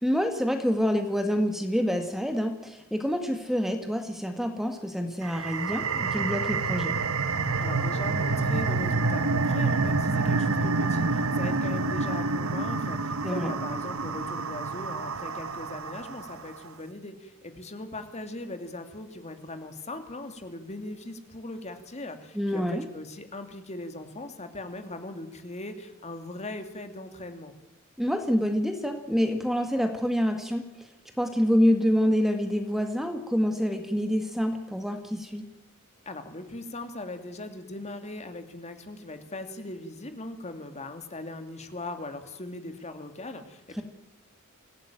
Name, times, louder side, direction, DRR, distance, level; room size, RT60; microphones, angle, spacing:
voice 1, 0.0-7.0 13.2-13.5 22.4-22.9 28.0-30.9 31.2-35.5, equal, ahead, 6 dB, 1.8 m, -27 dB
sound 1, 5.2-16.4, right 3 dB, 70° right, 1.2 m, -28 dB
voice 2, 7.6-27.5 36.1-43.8, left 2 dB, 30° left, 7 dB, 2.5 m, -39 dB
25.5 x 17.0 x 9.0 m, 0.92 s
head